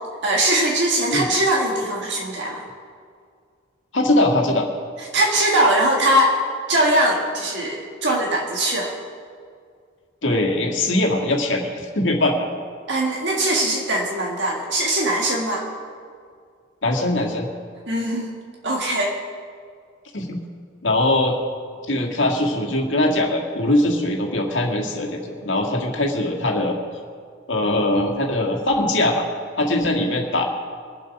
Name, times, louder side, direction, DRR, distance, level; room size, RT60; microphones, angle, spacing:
voice 1, 0.2-2.6 5.1-6.4 6.7-8.9 12.9-15.7 17.9-18.3 18.6-19.1, right 1 dB, 60° right, -1 dB, 1.9 m, -21 dB
voice 2, 3.9-4.7 10.2-12.5 16.8-17.5 20.1-20.4 20.8-21.3 21.9-26.7 27.5-29.3 29.6-30.4, left 1 dB, 70° left, 1 dB, 2.0 m, -21 dB
23.5 x 7.9 x 5.4 m, 2.1 s
head